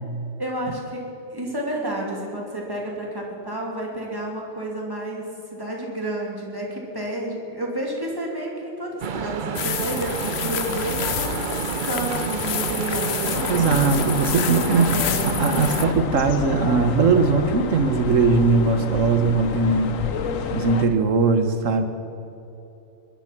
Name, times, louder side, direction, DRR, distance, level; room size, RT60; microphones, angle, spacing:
voice 1, 0.4-5.3 5.5-13.5 14.6-15.6, right 1 dB, 15° right, -2 dB, 2.9 m, -30 dB
sound 1, 9.0-15.9, right 6 dB, 50° right, 0.6 m, -29 dB
sound 2, 9.5-15.8, left 9 dB, 60° left, 0.9 m, -29 dB
sound 3, 13.3-20.9, left 6 dB, 80° left, 1.3 m, -29 dB
voice 2, 13.5-14.9 15.4-19.9 20.5-21.8, right 4 dB, 75° right, 8 dB, 1.5 m, -20 dB
21.0 x 11.0 x 6.0 m, 2.9 s
omnidirectional pair, 1.3 m